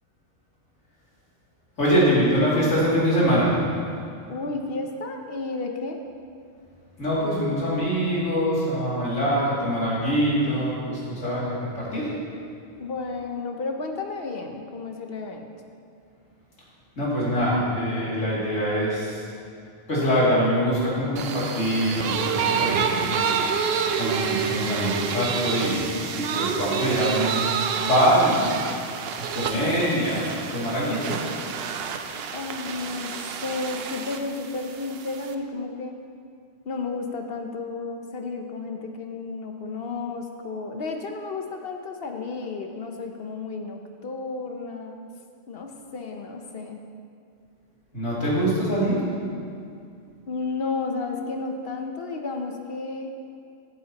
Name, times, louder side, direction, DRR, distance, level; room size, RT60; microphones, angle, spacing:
voice 1, 1.8-3.5 7.0-12.1 17.0-19.2 19.9-23.2 23.9-25.9 26.1-27.5 27.8-28.6 29.2-31.2 47.9-49.0, equal, 80° left, -8 dB, 3.0 m, -24 dB
voice 2, 4.3-6.0 12.8-15.5 32.3-36.0 36.7-45.0 45.5-46.8 50.3-53.1, left 3 dB, 55° left, 4 dB, 0.9 m, -32 dB
sound 1, 21.2-35.3, right 7 dB, 60° right, 0.7 m, -28 dB
13.5 x 8.5 x 2.9 m, 2.4 s
omnidirectional pair, 1.3 m